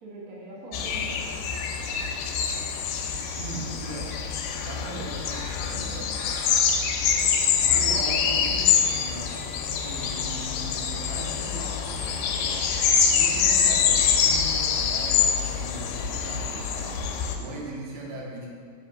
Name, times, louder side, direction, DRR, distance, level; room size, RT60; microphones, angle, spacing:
voice 1, 0.0-1.5 4.9-5.1 5.7-6.0 13.3-13.6, right 2 dB, 50° right, -7 dB, 1.0 m, -43 dB
sound 1, 0.7-17.4, left 7 dB, 80° left, 2.2 m, -25 dB
voice 2, 3.3-4.2 4.6-6.4 7.6-9.4 9.8-12.7 13.1-18.5, right 1 dB, 80° right, -3 dB, 2.5 m, -39 dB
5.6 x 5.0 x 4.7 m, 2.2 s
omnidirectional pair, 4.0 m